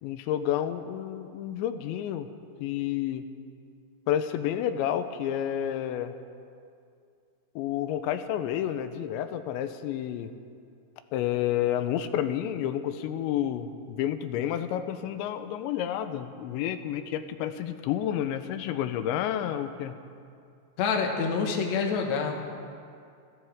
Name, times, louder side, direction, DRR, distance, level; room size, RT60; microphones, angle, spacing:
voice 1, 0.0-2.3 2.6-3.2 4.1-6.1 7.6-10.3 11.1-20.0, left 10 dB, 85° left, 9 dB, 2.9 m, -30 dB
voice 2, 20.8-22.4, left 5 dB, 60° left, 2 dB, 1.9 m, -27 dB
29.5 x 13.5 x 3.6 m, 2.4 s
omnidirectional pair, 5.3 m